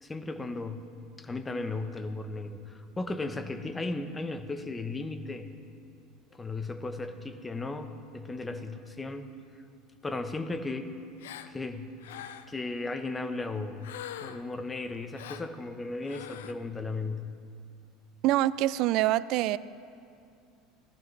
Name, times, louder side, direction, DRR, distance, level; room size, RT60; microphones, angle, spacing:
voice 1, 0.0-0.9 1.2-5.6 6.3-9.3 10.0-10.9 11.5-12.0 12.5-13.9 14.2-17.4, left 3 dB, 20° left, 9 dB, 1.0 m, -36 dB
Gasp, 11.2-11.5 12.0-12.6 13.8-14.5 15.1-15.5 16.0-16.5, left 11 dB, 75° left, 0.4 m, -43 dB
voice 2, 18.2-19.6, right 15 dB, 60° right, 19 dB, 0.3 m, -25 dB
18.0 x 14.0 x 3.3 m, 2.5 s
hypercardioid pair, 80°, 0 cm